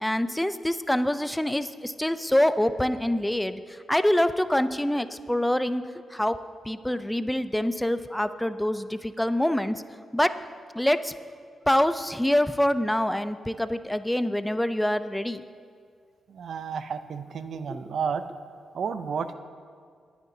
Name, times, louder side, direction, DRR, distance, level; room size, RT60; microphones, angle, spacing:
voice 1, 0.0-3.6 3.9-6.4 6.7-9.8 10.1-10.4 10.7-11.1 11.7-15.4 17.7-17.8, left 1 dB, 10° left, 12 dB, 0.5 m, -25 dB
voice 2, 16.3-18.3 18.7-19.3, right 6 dB, 70° right, 11 dB, 0.5 m, -31 dB
26.0 x 9.4 x 2.8 m, 2.1 s
supercardioid pair, 50°, 0 cm